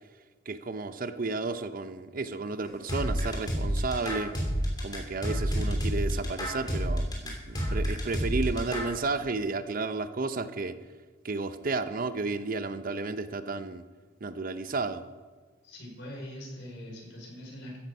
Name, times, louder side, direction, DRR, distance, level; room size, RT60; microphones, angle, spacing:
voice 1, 0.5-4.3 4.8-10.8 11.2-13.8 14.2-15.0, right 3 dB, 40° right, 11 dB, 0.6 m, -32 dB
sound 1, 2.9-8.9, equal, 20° left, 2.9 m, -29 dB
voice 2, 15.6-17.8, equal, 55° left, -3 dB, 5.4 m, -42 dB
14.5 x 10.5 x 5.5 m, 1.4 s
head